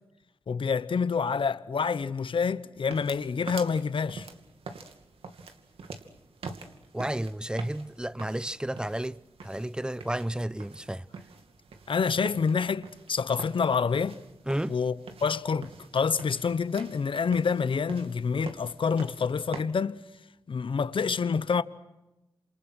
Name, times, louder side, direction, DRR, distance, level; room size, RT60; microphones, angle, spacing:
voice 1, 0.5-4.3 11.9-14.2 14.7-14.9 15.2-20.0 20.5-21.6, left 5 dB, 65° left, 1.1 m, -27 dB
sound 1, 2.8-19.6, right 4 dB, 85° right, 2.6 m, -46 dB
voice 2, 6.9-11.0 14.5-14.8, right 1 dB, 10° right, 0.9 m, -32 dB
28.5 x 28.0 x 6.3 m
cardioid pair, 60°, 9 cm